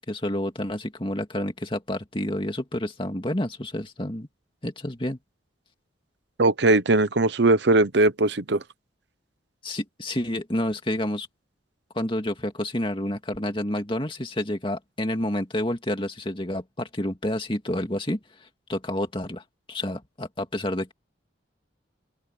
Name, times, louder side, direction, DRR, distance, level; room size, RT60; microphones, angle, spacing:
voice 1, 0.1-4.3 4.6-5.2 9.6-11.3 11.9-19.4 19.7-20.9, left 1 dB, 25° left, 2.4 m, -29 dB
voice 2, 6.4-8.6, right 2 dB, 60° right, 0.8 m, -20 dB
open air
head